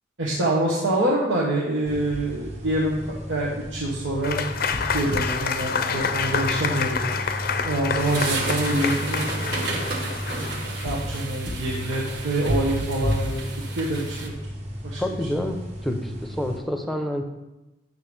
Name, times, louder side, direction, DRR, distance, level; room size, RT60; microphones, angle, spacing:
voice 1, 0.2-3.0 3.3-4.4 4.9-9.8 10.3-10.5 10.8-14.3 14.8-15.0, right 1 dB, 90° right, -5 dB, 1.2 m, -26 dB
sound 1, 1.9-16.6, equal, 35° right, 1.1 m, -33 dB
Applause / Crowd, 4.2-11.1, left 5 dB, 50° left, 0.5 m, -28 dB
sound 2, 8.0-14.3, right 3 dB, 65° right, 1.2 m, -33 dB
voice 2, 15.0-15.6 15.8-17.3, left 1 dB, ahead, 5 dB, 0.6 m, -28 dB
8.8 x 6.7 x 3.3 m, 1.0 s
head